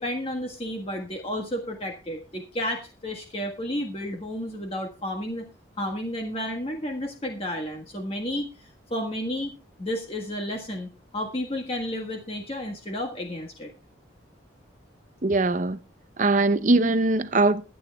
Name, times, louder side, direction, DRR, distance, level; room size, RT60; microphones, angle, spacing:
voice 1, 0.0-5.5 5.8-9.5 9.8-13.7, left 1 dB, 30° left, 1.5 m, -32 dB
voice 2, 15.2-15.8 16.2-17.6, right 2 dB, 40° right, 0.6 m, -21 dB
22.5 x 8.7 x 2.3 m
head